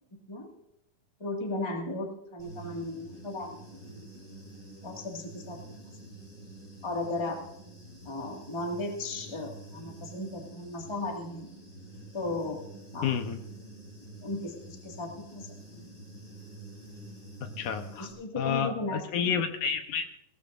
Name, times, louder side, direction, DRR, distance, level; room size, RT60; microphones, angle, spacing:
voice 1, 1.2-3.6 3.9-4.1 4.8-5.6 6.8-7.4 8.0-11.5 12.1-12.7 12.9-13.1 14.2-15.5 15.7-15.8 18.0-19.0, left 2 dB, 15° left, 1 dB, 1.2 m, -35 dB
Human voice / Buzz, 2.4-18.1, right 2 dB, 30° left, 4.5 m, -48 dB
voice 2, 13.0-13.4 17.6-18.1 18.4-20.1, left 7 dB, 75° left, 6 dB, 2.3 m, -30 dB
20.0 x 17.5 x 2.6 m, 0.81 s
omnidirectional pair, 3.8 m